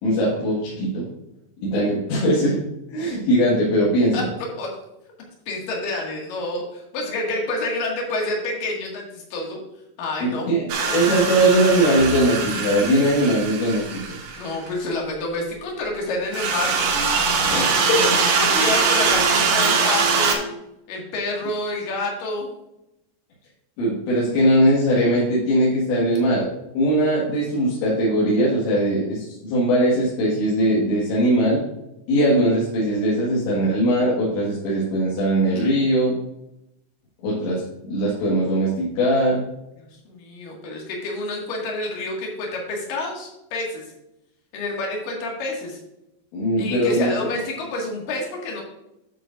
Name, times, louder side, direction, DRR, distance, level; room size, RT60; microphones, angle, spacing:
voice 1, 0.0-1.0 1.6-2.6 2.9-4.3 10.2-10.6 10.9-13.8 17.5-18.0 23.8-26.5 26.7-31.6 32.1-36.2 37.2-39.4 46.3-47.1, right 1 dB, 80° left, -6 dB, 4.1 m, -20 dB
voice 2, 5.5-9.6 10.0-10.5 10.8-10.9 14.4-16.8 18.0-20.5 20.9-22.5 40.0-43.8 44.5-45.8 46.6-48.6, left 2 dB, 55° left, -1 dB, 3.3 m, -28 dB
sound 1, 10.7-14.5 16.3-20.3, right 4 dB, 65° right, 3.3 m, -22 dB
10.0 x 7.4 x 2.6 m, 0.87 s
omnidirectional pair, 5.2 m